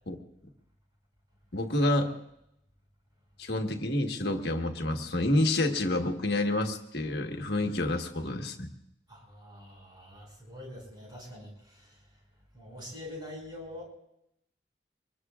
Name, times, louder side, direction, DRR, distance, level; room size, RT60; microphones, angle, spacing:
voice 1, 1.5-2.1 3.4-8.7, left 1 dB, 60° left, 4 dB, 1.4 m, -28 dB
voice 2, 9.1-12.0 12.5-13.9, left 1 dB, 25° right, -1 dB, 5.8 m, -45 dB
25.0 x 20.5 x 2.5 m, 0.81 s
head